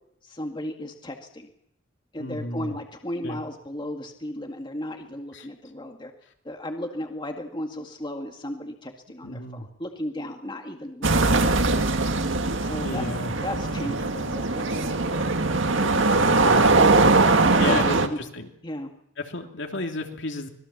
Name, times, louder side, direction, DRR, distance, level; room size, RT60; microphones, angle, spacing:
voice 1, 0.2-1.5 2.1-6.1 6.4-11.9 12.6-13.0 13.4-15.2 15.8-16.1 16.8-17.8 18.1-18.2 18.6-18.9, left 1 dB, 25° left, 4 dB, 2.0 m, -35 dB
voice 2, 2.2-2.7 3.2-3.4 5.3-5.5 9.2-9.7 12.4-13.3 13.7-14.0 16.1-17.2 17.6-18.5 19.2-20.5, left 2 dB, 65° left, 4 dB, 3.0 m, -33 dB
sound 1, 11.0-18.1, right 3 dB, 70° right, 1.9 m, -21 dB
25.0 x 20.5 x 7.3 m, 0.74 s
head